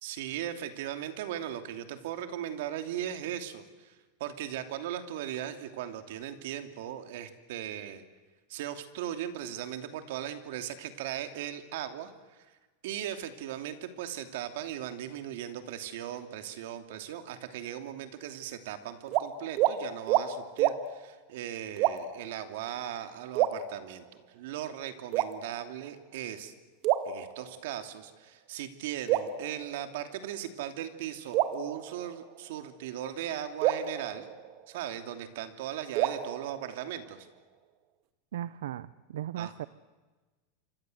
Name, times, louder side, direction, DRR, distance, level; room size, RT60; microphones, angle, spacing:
voice 1, 0.0-8.0 8.5-12.5 12.8-26.5 27.0-34.3 34.7-37.3 39.4-39.5, right 11 dB, 70° right, 8 dB, 2.8 m, -38 dB
sound 1, 19.1-19.3 19.6-19.8 20.1-20.3 20.6-20.8 21.8-22.2 23.4-24.2 25.1-25.8 26.8-27.8 29.1-30.2 31.3-32.5 33.6-35.0 36.0-37.2, right 13 dB, 45° right, 2.0 m, -30 dB
voice 2, 38.3-39.7, right 11 dB, 85° right, 17 dB, 0.8 m, -37 dB
28.0 x 24.5 x 8.0 m, 1.3 s
supercardioid pair, 140°, 0 cm